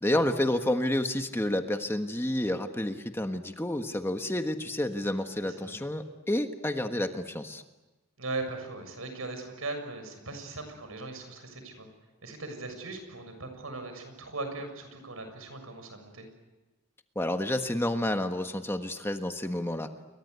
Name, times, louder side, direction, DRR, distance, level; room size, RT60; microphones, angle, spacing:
voice 1, 0.0-7.6 17.1-19.9, left 1 dB, 10° left, 6 dB, 1.4 m, -30 dB
voice 2, 5.4-5.8 8.2-11.9 12.2-16.3, right 3 dB, 85° right, 7 dB, 7.0 m, -39 dB
29.5 x 23.5 x 8.2 m, 1.1 s
head